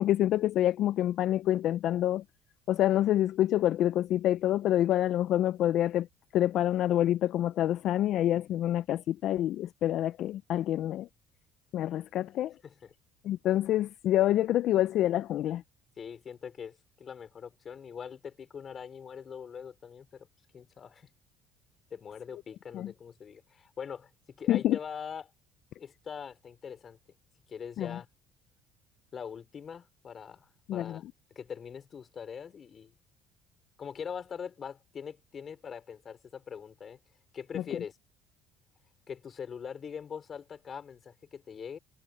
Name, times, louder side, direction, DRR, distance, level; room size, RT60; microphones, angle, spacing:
voice 1, 0.0-2.2 2.7-6.1 6.3-11.1 11.7-12.5 13.2-15.6 22.7-22.9 24.5-24.8 27.8-28.0 30.7-31.0 37.5-37.6, left 13 dB, 65° left, 0.5 m, -27 dB
voice 2, 12.6-12.9 16.0-20.3 20.5-21.1 21.9-25.2 25.8-27.0 27.5-28.1 29.1-31.0 31.3-32.9 33.8-37.0 37.3-38.0 39.1-41.8, left 7 dB, 40° left, 5.3 m, -42 dB
supercardioid pair, 85°, 0 cm